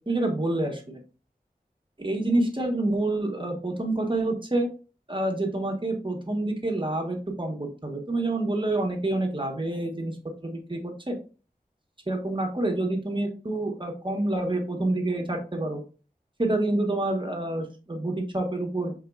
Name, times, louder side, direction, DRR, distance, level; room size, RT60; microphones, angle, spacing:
voice 1, 0.1-1.0 2.0-4.7 5.1-10.2 10.4-11.2 12.1-15.8 16.4-18.9, right 2 dB, 30° right, 2 dB, 1.2 m, -27 dB
4.8 x 3.9 x 2.3 m, 0.35 s
wide cardioid pair, 45°, 16 cm